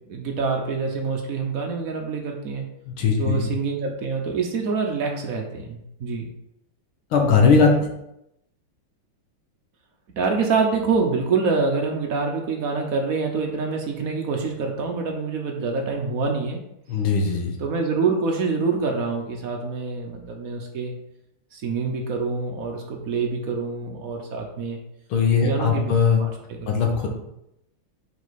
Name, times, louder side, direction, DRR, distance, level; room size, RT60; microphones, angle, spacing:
voice 1, 0.1-2.7 3.2-6.3 10.2-16.6 17.6-20.9 21.5-24.8 25.4-25.9 26.2-26.6, right 4 dB, 60° right, 2 dB, 0.9 m, -26 dB
voice 2, 2.9-3.5 7.1-7.7 16.9-17.6 25.1-26.2 26.7-27.1, left 5 dB, 70° left, 2 dB, 2.0 m, -19 dB
5.5 x 5.2 x 4.1 m, 0.82 s
omnidirectional pair, 2.4 m